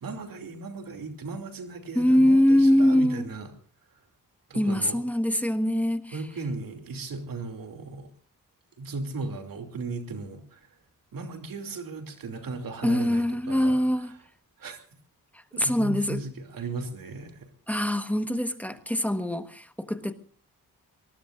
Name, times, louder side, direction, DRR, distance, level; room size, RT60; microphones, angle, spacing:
voice 1, 0.0-3.5 4.5-5.0 6.1-8.1 8.8-10.7 11.1-13.8 14.6-14.8 15.5-17.5, right 3 dB, 90° right, 4 dB, 2.9 m, -36 dB
voice 2, 1.9-3.3 4.5-6.2 12.8-14.1 15.3-16.2 17.7-20.1, left 1 dB, 5° left, 8 dB, 1.3 m, -23 dB
26.0 x 20.0 x 2.5 m, 0.43 s
wide cardioid pair, 100°, 33 cm